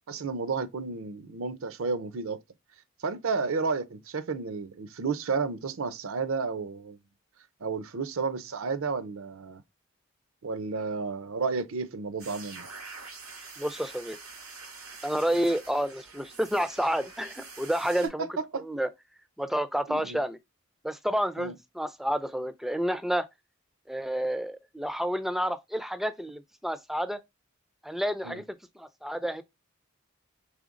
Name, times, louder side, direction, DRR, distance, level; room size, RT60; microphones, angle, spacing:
voice 1, 0.1-2.4 3.0-7.0 7.6-9.6 10.4-12.7 18.0-18.6 19.9-20.2 21.4-21.5 28.2-28.4, right 4 dB, 70° right, 0.5 m, -32 dB
sound 1, 12.2-18.1, right 4 dB, 90° right, 2.3 m, -45 dB
voice 2, 13.6-14.2 15.0-18.3 18.5-18.9 19.4-20.4 20.8-23.3 23.9-27.2 27.8-28.4 28.8-29.4, equal, ahead, 0.3 m, -30 dB
4.9 x 3.4 x 2.5 m
head